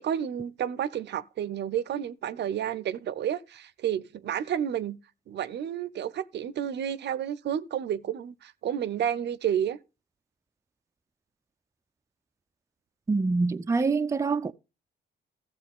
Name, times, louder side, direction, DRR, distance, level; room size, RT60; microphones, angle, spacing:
voice 1, 0.0-5.0 5.3-9.8, right 9 dB, 60° right, 0.6 m, -31 dB
voice 2, 13.1-14.5, right 4 dB, 15° right, 0.4 m, -25 dB
14.0 x 7.2 x 3.6 m
cardioid pair, 90°, 20 cm